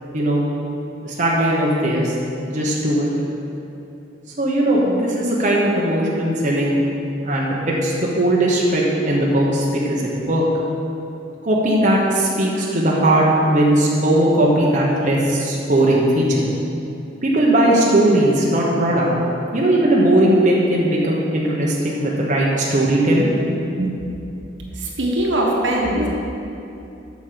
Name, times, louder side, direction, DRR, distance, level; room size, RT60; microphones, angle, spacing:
voice 1, 0.1-0.4 1.0-2.1 2.5-3.1 4.4-6.8 7.2-10.4 11.4-16.4 17.2-19.1 19.5-23.3 23.8-23.9, right 1 dB, 40° right, -4 dB, 1.1 m, -18 dB
voice 2, 24.7-26.1, right 1 dB, 75° right, -2 dB, 1.5 m, -21 dB
7.3 x 6.2 x 6.9 m, 2.8 s
head